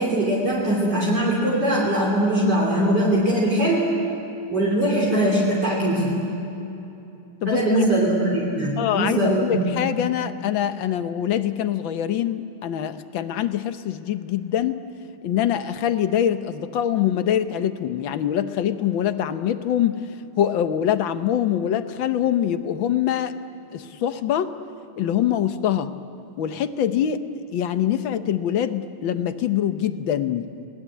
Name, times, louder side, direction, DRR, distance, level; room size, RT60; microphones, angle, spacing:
voice 1, 0.0-3.9 4.5-6.2 7.5-9.7, right 1 dB, 50° right, -4 dB, 3.8 m, -21 dB
voice 2, 7.4-7.8 8.8-14.8 15.2-20.0 20.4-23.3 23.7-24.5 25.0-25.9 26.4-27.2 27.5-30.5, left 10 dB, 70° left, 10 dB, 1.6 m, -24 dB
29.5 x 19.5 x 8.5 m, 2.8 s
omnidirectional pair, 2.3 m